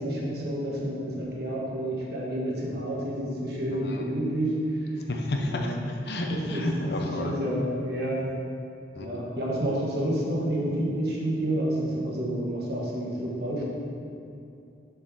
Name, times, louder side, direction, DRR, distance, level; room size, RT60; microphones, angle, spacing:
voice 1, 0.0-4.6 5.5-5.8 6.3-6.6 7.2-8.2 9.0-13.6, right 1 dB, 60° right, -4 dB, 1.5 m, -29 dB
voice 2, 3.7-4.1 5.1-7.4 9.0-9.1, left 1 dB, 60° left, 2 dB, 0.8 m, -31 dB
6.9 x 6.6 x 3.8 m, 2.6 s
head